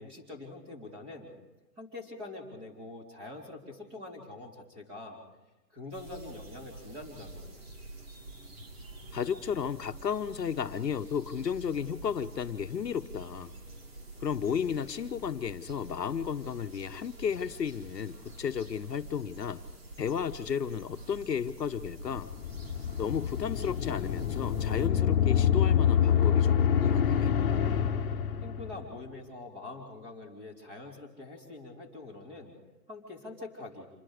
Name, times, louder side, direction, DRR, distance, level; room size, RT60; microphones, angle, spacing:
voice 1, 0.0-1.3 1.8-5.2 5.7-7.7 28.4-32.5 32.9-33.9, left 2 dB, 10° right, -1 dB, 3.9 m, -44 dB
sound 1, 5.9-24.9, right 2 dB, 35° right, 2.9 m, -47 dB
voice 2, 9.1-13.5 14.2-19.6 20.0-22.3 23.0-27.4, left 7 dB, 75° left, 8 dB, 1.3 m, -33 dB
sound 2, 21.9-28.9, left 9 dB, 35° left, 1.8 m, -26 dB
27.5 x 21.0 x 5.1 m, 1.0 s
hypercardioid pair, 165°, 50 cm